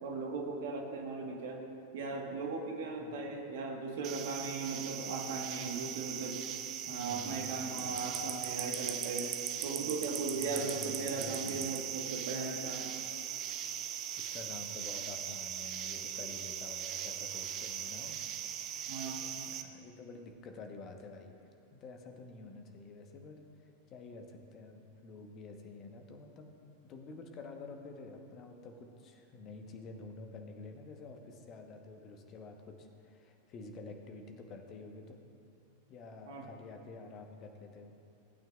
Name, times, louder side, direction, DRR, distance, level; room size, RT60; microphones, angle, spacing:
voice 1, 0.0-1.6 1.9-6.5 6.9-9.3 9.6-12.9 18.9-19.2 36.3-36.5, right 3 dB, 55° right, 1 dB, 1.5 m, -38 dB
voice 2, 3.0-3.3 6.8-8.3 10.3-11.8 14.2-18.2 18.7-21.3 21.7-23.4 23.9-26.5 26.8-35.3 35.9-37.9, left 3 dB, 35° left, 4 dB, 1.2 m, -49 dB
sound 1, 4.0-19.6, right 10 dB, 35° right, 0.7 m, -39 dB
18.5 x 9.0 x 2.5 m, 2.7 s
figure-of-eight pair, 90°, 0 cm